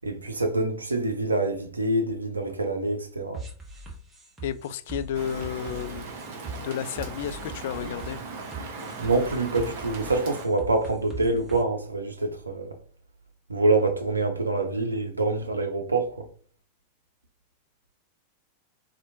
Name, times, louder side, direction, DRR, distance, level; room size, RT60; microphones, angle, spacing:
voice 1, 0.0-3.4 9.0-12.8 13.5-16.3, right 2 dB, 80° right, 0.6 m, -26 dB
sound 1, 3.3-11.6, right 2 dB, 10° right, 1.1 m, -41 dB
voice 2, 4.4-6.1 6.6-8.2, left 9 dB, 55° left, 0.3 m, -32 dB
Rain, 5.1-10.5, right 3 dB, 50° right, 0.8 m, -39 dB
4.3 x 2.5 x 2.7 m
figure-of-eight pair, 90°, 0 cm